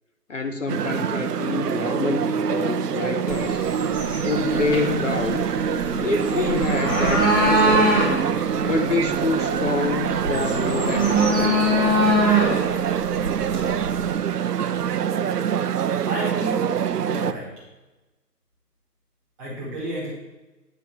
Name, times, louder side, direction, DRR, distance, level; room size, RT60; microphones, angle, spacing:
voice 1, 0.3-3.6 4.2-5.5 5.9-8.0 8.6-11.6, left 4 dB, 50° left, 6 dB, 0.6 m, -27 dB
sound 1, 0.7-17.3, right 8 dB, 70° right, 0.6 m, -25 dB
sound 2, 3.3-14.1, equal, 15° left, 1.2 m, -24 dB
voice 2, 16.1-17.5 19.4-20.1, right 1 dB, 5° right, -8 dB, 1.1 m, -31 dB
9.2 x 4.2 x 6.0 m, 1.1 s
figure-of-eight pair, 160°, 49 cm